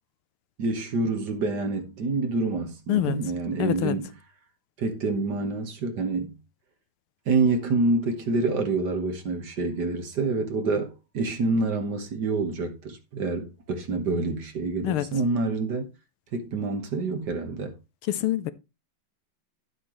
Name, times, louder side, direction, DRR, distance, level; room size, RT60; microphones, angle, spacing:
voice 1, 0.6-4.1 4.8-6.4 7.3-15.9 16.3-17.8, right 3 dB, 55° right, 1.8 m, -27 dB
voice 2, 3.6-4.0 14.8-15.1 18.1-18.5, left 13 dB, 85° left, 1.7 m, -25 dB
11.5 x 7.7 x 3.1 m
omnidirectional pair, 2.3 m